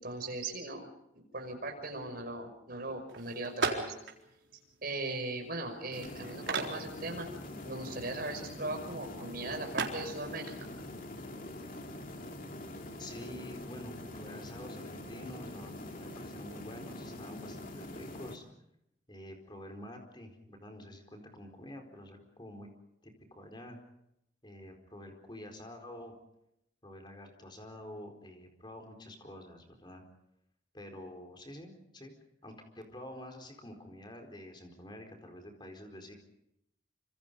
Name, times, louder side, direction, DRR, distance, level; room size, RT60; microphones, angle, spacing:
voice 1, 0.0-0.9 1.1-3.9 4.8-7.3 7.7-10.5, right 2 dB, 50° right, 4 dB, 5.9 m, -39 dB
sound 1, 3.1-13.5, right 4 dB, 75° right, 4.0 m, -41 dB
sound 2, 5.9-18.4, left 1 dB, 45° left, 2.6 m, -44 dB
voice 2, 13.0-18.4 19.1-22.7 23.0-23.8 24.4-26.1 26.8-30.0 30.7-32.1 32.4-36.1, left 1 dB, 25° left, 4 dB, 4.3 m, -48 dB
26.5 x 26.5 x 5.4 m, 0.81 s
head